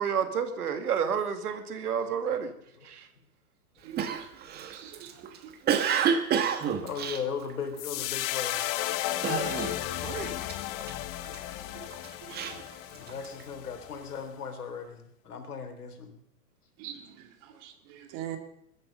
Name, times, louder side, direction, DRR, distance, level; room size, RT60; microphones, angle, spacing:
voice 1, 0.0-2.5 2.8-3.1 10.0-10.4, right 7 dB, 80° right, 9 dB, 2.3 m, -30 dB
Cough, 4.0-8.1 8.5-8.8 9.2-10.0 10.2-11.4 11.9-13.4, right 7 dB, 20° right, 1.3 m, -29 dB
voice 2, 4.7-5.1 5.4-5.5 9.5-9.8 11.7-11.9 12.2-12.3 16.8-17.0 17.6-18.4, right 11 dB, 35° right, 7 dB, 2.3 m, -42 dB
voice 3, 6.8-8.7 12.9-16.2, left 6 dB, 85° left, 6 dB, 3.6 m, -37 dB
sound 1, 7.8-14.2, left 14 dB, 30° left, 0.9 m, -34 dB
21.5 x 10.0 x 5.3 m, 0.76 s
hypercardioid pair, 135°, 45 cm